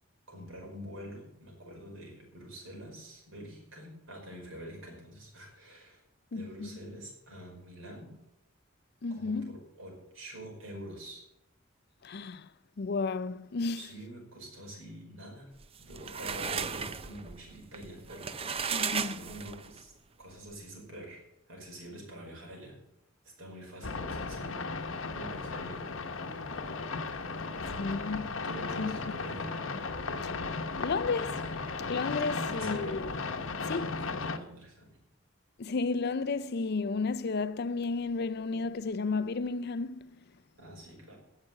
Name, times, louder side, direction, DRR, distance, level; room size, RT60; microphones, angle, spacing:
voice 1, 0.3-6.0 6.3-8.1 9.1-11.2 13.7-15.5 15.8-18.7 19.1-19.9 20.2-22.8 23.2-24.6 25.1-25.8 28.4-29.5 32.4-33.1 33.7-35.0 40.5-41.2, right 1 dB, 65° right, 5.0 m, -46 dB
voice 2, 6.3-6.8 9.0-9.6 12.0-12.5 12.8-13.9 18.7-19.2 27.8-28.5 28.8-29.1 30.2-30.3 30.8-33.1 33.7-34.0 35.6-40.2, left 4 dB, 50° left, 0.5 m, -33 dB
sound 1, 15.6-19.8, right 6 dB, 25° right, 0.5 m, -35 dB
sound 2, 23.8-34.4, left 4 dB, 65° left, 1.0 m, -36 dB
16.5 x 5.9 x 7.7 m
head